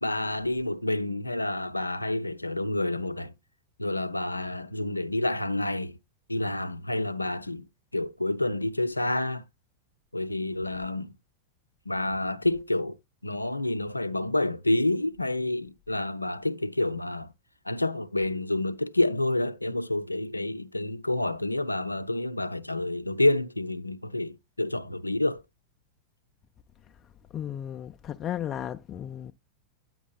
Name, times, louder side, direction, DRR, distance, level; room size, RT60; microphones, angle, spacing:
voice 1, 0.0-3.3 3.8-5.9 6.3-9.4 10.1-11.1 11.9-13.0 13.2-17.3 17.7-25.4, left 2 dB, 85° left, 0.5 m, -28 dB
voice 2, 27.3-29.3, left 10 dB, 30° left, 0.4 m, -34 dB
10.0 x 8.7 x 2.3 m
figure-of-eight pair, 90°, 0 cm